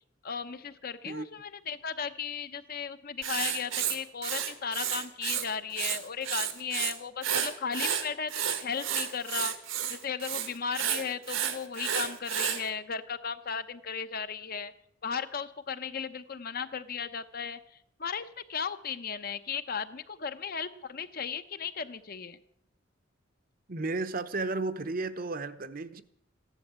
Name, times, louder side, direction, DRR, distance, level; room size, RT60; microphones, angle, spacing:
voice 1, 0.2-9.5 9.9-14.7 15.0-17.6 18.0-22.4, left 6 dB, 50° left, 0.9 m, -36 dB
Writing, 3.2-5.5 5.7-6.9 7.2-12.6, right 9 dB, 85° right, 1.8 m, -31 dB
voice 2, 23.7-26.0, right 3 dB, 45° right, 0.9 m, -33 dB
15.0 x 11.0 x 8.1 m
head